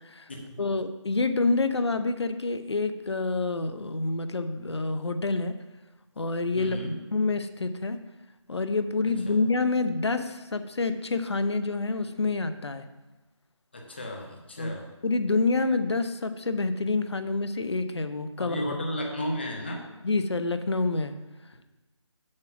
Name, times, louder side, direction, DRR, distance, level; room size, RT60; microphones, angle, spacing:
voice 1, 0.6-5.5 6.2-8.0 8.5-12.9 14.6-14.7 15.0-18.6 20.0-21.2, left 3 dB, 60° left, 10 dB, 0.7 m, -27 dB
voice 2, 6.5-7.0 9.3-9.4 13.7-14.8 18.4-19.9, left 1 dB, 20° left, 0 dB, 0.9 m, -33 dB
7.5 x 6.1 x 5.9 m, 1.1 s
figure-of-eight pair, 175°, 16 cm